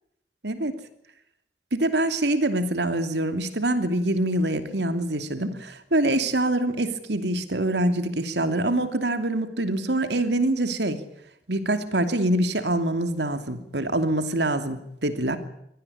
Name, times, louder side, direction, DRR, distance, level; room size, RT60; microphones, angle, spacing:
voice 1, 1.7-11.0 11.5-15.4, right 1 dB, 80° right, 9 dB, 2.7 m, -25 dB
24.5 x 18.0 x 8.6 m, 0.77 s
head